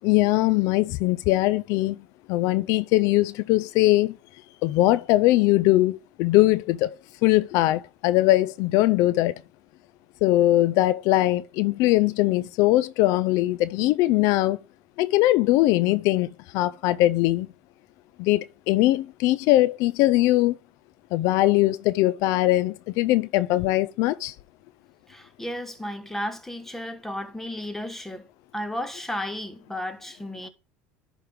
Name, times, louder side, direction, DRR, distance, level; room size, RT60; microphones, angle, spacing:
voice 1, 0.0-2.0 2.3-4.2 4.6-7.0 7.2-9.4 10.2-14.6 15.0-17.5 18.2-20.6 21.1-24.3, left 17 dB, 70° left, 0.4 m, -21 dB
voice 2, 25.1-28.3 28.5-30.5, left 1 dB, 5° left, 1.2 m, -33 dB
11.0 x 3.7 x 4.7 m
supercardioid pair, 95°, 6 cm